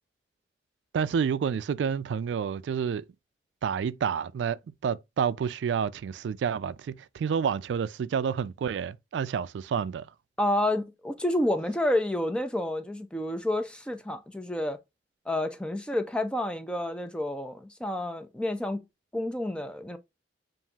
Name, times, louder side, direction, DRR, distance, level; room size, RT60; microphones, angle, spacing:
voice 1, 0.9-3.0 3.6-10.1, right 7 dB, 90° right, 0.3 m, -29 dB
voice 2, 10.4-14.8 15.3-18.8 19.1-20.0, left 1 dB, 5° left, 0.4 m, -29 dB
7.2 x 2.6 x 2.3 m
head